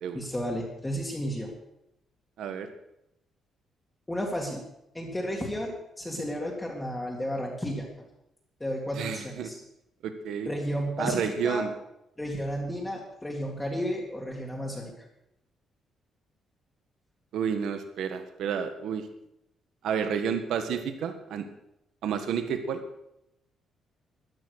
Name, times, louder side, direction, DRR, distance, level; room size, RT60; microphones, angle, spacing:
voice 1, 0.1-1.5 4.1-4.6 4.9-7.9 8.6-9.6 10.5-11.6 12.2-14.9, equal, 10° left, -2 dB, 2.2 m, -32 dB
voice 2, 2.4-2.7 9.0-9.5 10.0-10.5 11.0-11.7 17.3-19.1 19.8-21.5 22.0-22.8, right 7 dB, 70° right, 8 dB, 1.6 m, -30 dB
13.5 x 11.5 x 6.6 m, 0.83 s
cardioid pair, 170°, 0 cm